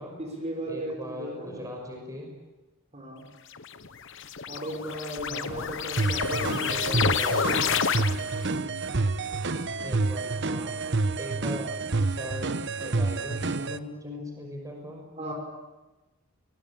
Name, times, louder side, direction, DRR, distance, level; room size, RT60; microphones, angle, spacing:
voice 1, 0.1-1.7 2.9-3.3 4.5-6.7 8.4-8.9 13.7-14.3 15.2-15.3, equal, 30° right, 2 dB, 6.1 m, -37 dB
voice 2, 0.7-2.3 5.3-5.6 6.7-7.8 9.8-10.8 11.2-11.7 12.1-12.5 12.8-15.1, equal, 15° right, 2 dB, 6.2 m, -40 dB
sound 1, 3.5-8.5, left 6 dB, 60° left, 1.2 m, -29 dB
sound 2, 6.0-13.8, right 3 dB, 55° right, 1.0 m, -28 dB
28.5 x 22.0 x 8.7 m, 1.1 s
head